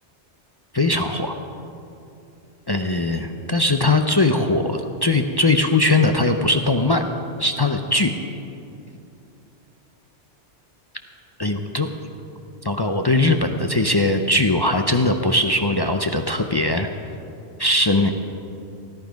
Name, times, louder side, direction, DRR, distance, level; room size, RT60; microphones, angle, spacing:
voice 1, 0.7-1.4 2.7-7.1 7.4-8.1 11.4-11.9 12.6-16.9 17.6-18.1, left 2 dB, 30° left, 5 dB, 0.4 m, -20 dB
17.0 x 11.5 x 5.2 m, 2.8 s
omnidirectional pair, 1.2 m